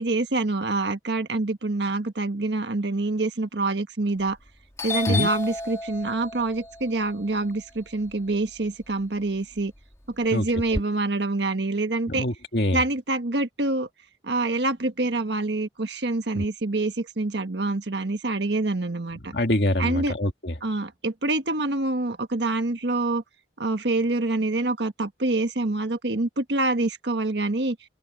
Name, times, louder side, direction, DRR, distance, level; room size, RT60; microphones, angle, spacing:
voice 1, 0.0-4.4 4.8-9.7 10.2-12.2 12.7-13.9 14.2-19.3 19.8-20.1 20.6-23.2 23.6-27.8, right 2 dB, 80° right, 1.4 m, -26 dB
Doorbell, 4.2-4.5 4.8-8.9 9.3-10.8, left 3 dB, 15° left, 2.3 m, -33 dB
voice 2, 12.1-12.8 16.4-16.5 19.3-20.5, left 1 dB, 65° left, 2.2 m, -24 dB
open air
head